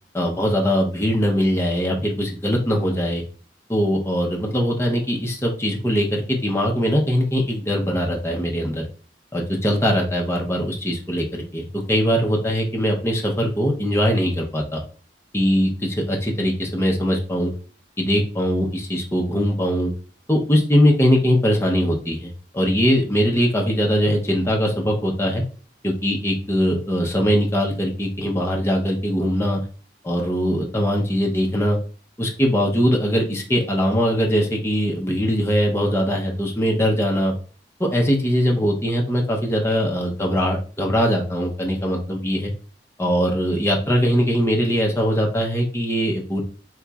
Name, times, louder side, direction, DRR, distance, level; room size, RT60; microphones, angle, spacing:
voice 1, 0.1-3.2 3.7-8.8 9.3-14.8 15.3-17.5 18.0-19.9 20.3-25.4 25.8-29.6 30.0-31.8 32.2-37.3 37.8-42.5 43.0-46.4, equal, 15° left, 0 dB, 0.6 m, -21 dB
3.8 x 3.0 x 2.3 m, 0.39 s
head